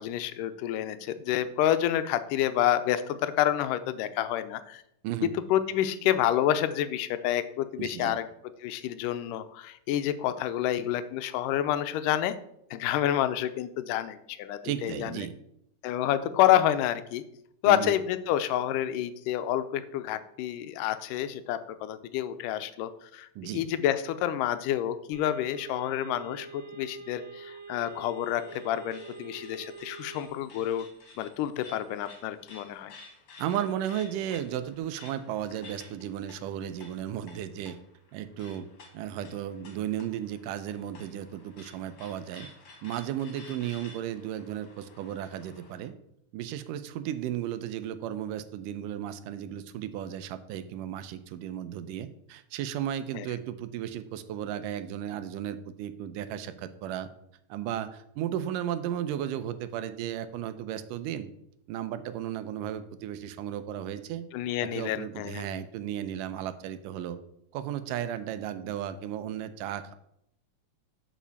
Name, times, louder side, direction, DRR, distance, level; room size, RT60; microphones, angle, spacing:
voice 1, 0.0-4.8 5.5-8.3 8.6-12.4 12.7-15.3 15.8-17.2 17.6-30.9 31.2-32.9 53.2-53.3 64.3-65.5, left 11 dB, 85° left, 11 dB, 2.2 m, -28 dB
voice 2, 7.8-8.2 14.6-15.4 17.6-18.0 23.4-23.6 33.4-37.8 38.1-38.7 38.9-42.5 42.8-45.9 46.3-57.1 57.5-61.3 61.7-64.3 64.6-67.2 67.5-70.0, right 10 dB, 90° right, 11 dB, 2.3 m, -34 dB
sound 1, 25.1-30.3, right 5 dB, 30° right, 2.5 m, -45 dB
sound 2, 27.7-45.9, left 3 dB, 50° left, 2.3 m, -53 dB
7.3 x 5.5 x 7.0 m, 0.75 s
omnidirectional pair, 3.7 m